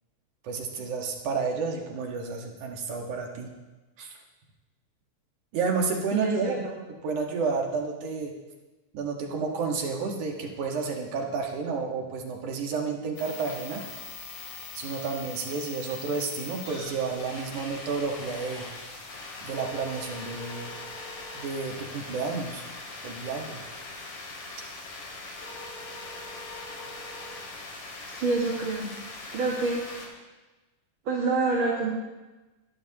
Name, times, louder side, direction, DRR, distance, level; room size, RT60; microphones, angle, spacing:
voice 1, 0.4-3.5 4.0-4.1 5.5-6.6 7.0-8.3 8.9-13.8 14.7-18.6 19.4-20.7 21.3-22.6 23.0-23.6, right 4 dB, 75° right, 1 dB, 3.1 m, -31 dB
voice 2, 6.1-6.6 28.1-29.0 29.3-29.9 31.1-31.9, right 3 dB, 45° right, -3 dB, 2.2 m, -27 dB
sound 1, 13.2-30.1, left 3 dB, 65° left, 3.7 m, -41 dB
22.5 x 12.5 x 3.0 m, 1.1 s
omnidirectional pair, 3.5 m